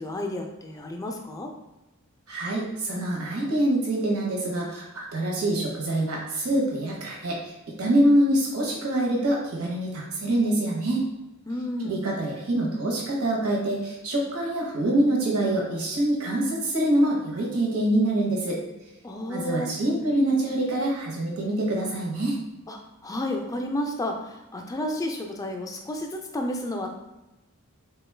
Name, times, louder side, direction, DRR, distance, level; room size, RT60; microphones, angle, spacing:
voice 1, 0.0-1.5 11.5-12.0 19.0-19.7 22.7-26.9, left 1 dB, 15° left, 3 dB, 0.3 m, -31 dB
voice 2, 2.3-7.5 7.8-11.0 11.8-18.6 19.3-22.4, right 1 dB, 85° right, -2 dB, 0.8 m, -25 dB
3.7 x 2.2 x 3.2 m, 1.0 s
head